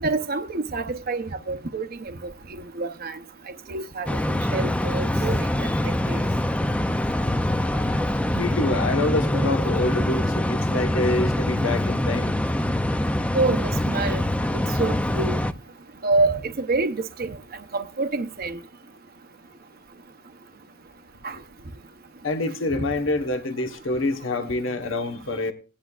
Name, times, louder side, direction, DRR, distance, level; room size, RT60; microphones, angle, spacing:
voice 1, 0.0-2.2 2.5-3.2 3.7-4.2 4.5-6.3 13.3-14.2 14.8-15.4 16.0-17.4 17.7-18.6 21.2-21.4, right 3 dB, 50° right, 0.7 m, -27 dB
sound 1, 4.1-15.5, left 1 dB, 5° left, 0.4 m, -24 dB
voice 2, 8.3-12.3 22.2-25.5, left 2 dB, 75° left, 1.2 m, -26 dB
18.0 x 10.0 x 2.4 m
head